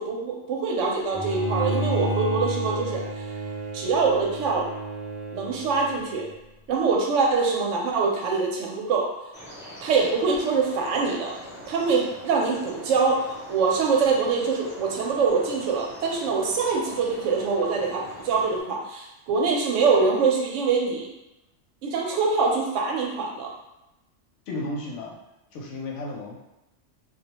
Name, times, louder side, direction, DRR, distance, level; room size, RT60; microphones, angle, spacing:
voice 1, 0.0-3.0 3.7-4.7 5.3-6.3 6.7-9.1 9.8-11.4 11.7-21.1 21.8-23.5, right 4 dB, 85° right, 0 dB, 0.9 m, -24 dB
Bowed string instrument, 1.1-6.3, right 1 dB, 55° right, 0.6 m, -31 dB
sound 1, 9.3-18.6, equal, 5° right, 0.5 m, -43 dB
voice 2, 24.5-25.2 25.5-26.4, left 2 dB, 80° left, -2 dB, 0.9 m, -33 dB
2.3 x 2.1 x 2.8 m, 0.92 s
omnidirectional pair, 1.2 m